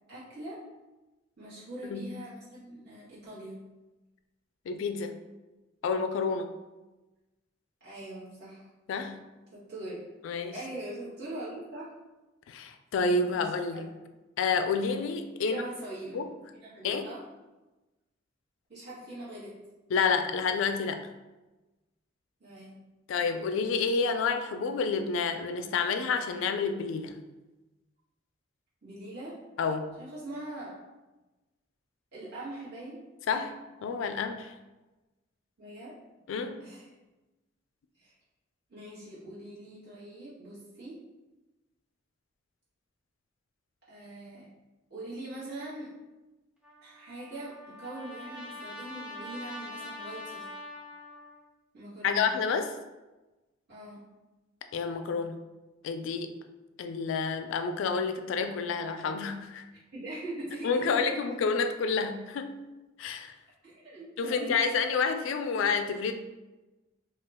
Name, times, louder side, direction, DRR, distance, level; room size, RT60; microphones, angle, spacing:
voice 1, 0.1-0.6 1.4-3.6 7.8-8.6 9.5-10.0 10.5-11.9 13.2-13.9 15.4-16.2 16.5-17.2 18.7-19.6 22.4-22.8 28.8-29.4 30.0-30.7 32.1-33.0 33.3-33.5 35.6-36.0 36.6-36.9 37.9-38.1 38.7-41.0 43.8-44.5 44.9-45.9 46.8-50.4 51.7-52.3 53.7-54.0 59.9-61.3 63.6-64.7, right 1 dB, 60° right, -10 dB, 1.5 m, -42 dB
voice 2, 4.7-5.1 5.8-6.5 8.9-9.2 10.2-10.5 12.5-13.9 14.4-15.6 16.1-16.3 16.8-17.1 19.9-21.0 23.1-27.2 29.6-29.9 33.3-34.5 36.3-36.7 52.0-52.7 54.7-55.4 55.8-56.3 56.8-59.6 60.6-62.6 63.0-63.3 64.2-66.1, left 5 dB, 70° left, 7 dB, 0.3 m, -29 dB
Trumpet, 46.6-51.4, left 1 dB, 5° right, 0.4 m, -44 dB
2.8 x 2.3 x 3.4 m, 1.1 s
head